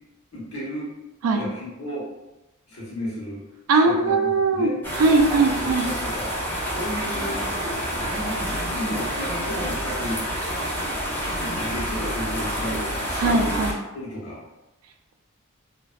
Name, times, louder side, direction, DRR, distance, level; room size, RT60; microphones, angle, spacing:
voice 1, 0.3-0.9 1.3-2.0 2.7-3.4 3.8-4.8 5.3-6.3 6.7-10.2 11.2-13.6 13.9-14.4, equal, 85° left, -7 dB, 1.1 m, -33 dB
voice 2, 3.7-5.9 13.2-13.7, right 3 dB, 85° right, 5 dB, 0.3 m, -20 dB
sound 1, 4.8-13.7, equal, 10° left, 0.6 m, -28 dB
2.5 x 2.3 x 2.2 m, 1.0 s
head